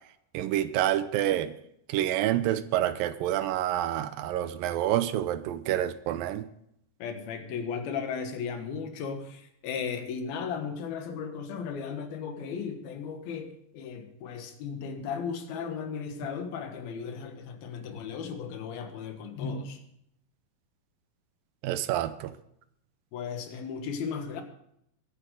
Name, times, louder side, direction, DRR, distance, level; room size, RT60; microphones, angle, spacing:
voice 1, 0.3-1.5 1.9-6.5 21.6-22.3, right 12 dB, 80° right, 13 dB, 2.4 m, -28 dB
voice 2, 7.0-19.8 23.1-24.4, left 6 dB, 90° left, 6 dB, 3.3 m, -36 dB
22.5 x 9.7 x 3.8 m, 0.74 s
omnidirectional pair, 4.2 m